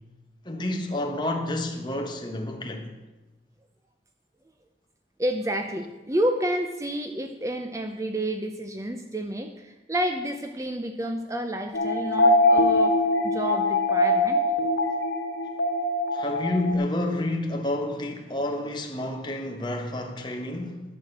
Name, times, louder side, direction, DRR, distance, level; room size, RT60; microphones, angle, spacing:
voice 1, 0.4-2.9 16.1-20.8, left 1 dB, 25° left, 1.3 m, -29 dB
voice 2, 5.2-13.0 13.2-14.4, right 1 dB, 15° right, 0.6 m, -30 dB
sound 1, 11.7-16.7, left 2 dB, 80° left, 1.4 m, -22 dB
11.5 x 6.4 x 7.8 m
head